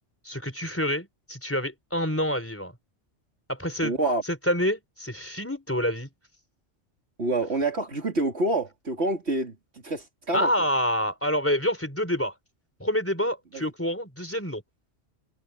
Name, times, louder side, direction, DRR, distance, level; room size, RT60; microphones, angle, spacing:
voice 1, 0.2-2.7 3.5-3.9 4.5-6.1 10.3-12.3 12.8-14.6, equal, 10° left, 4.1 m, -27 dB
voice 2, 3.8-4.2 7.2-9.6 9.8-10.5 13.5-13.6, right 2 dB, 65° right, 3.6 m, -27 dB
omnidirectional pair, 1.2 m